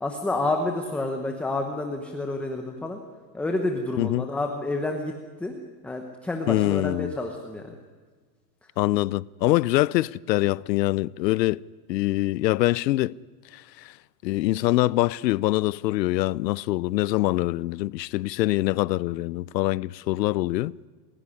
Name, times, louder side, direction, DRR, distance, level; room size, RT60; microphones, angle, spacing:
voice 1, 0.0-3.0 3.3-5.1 5.4-5.6 5.8-7.7, left 2 dB, 5° left, 0.9 m, -29 dB
voice 2, 6.5-7.1 8.8-11.6 11.9-13.1 13.5-13.9 14.2-20.7, left 17 dB, 80° left, 0.7 m, -24 dB
27.5 x 16.0 x 9.9 m
supercardioid pair, 170°, 49 cm